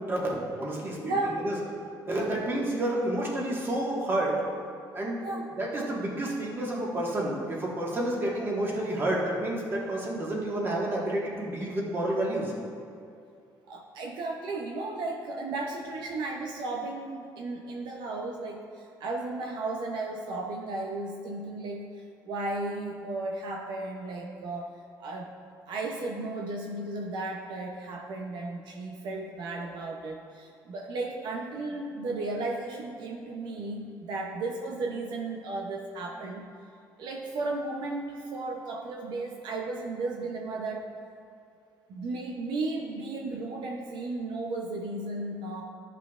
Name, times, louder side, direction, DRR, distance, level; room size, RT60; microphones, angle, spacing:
voice 1, 0.0-1.5 2.1-4.4 4.9-5.2 5.6-12.5, right 1 dB, 30° right, -3 dB, 1.5 m, -30 dB
voice 2, 1.0-1.5 5.2-5.4 13.7-25.3 25.7-36.5 37.0-40.9 41.9-45.6, right 2 dB, 75° right, 1 dB, 0.7 m, -34 dB
12.5 x 5.6 x 2.4 m, 2.4 s
cardioid pair, 135°, 8 cm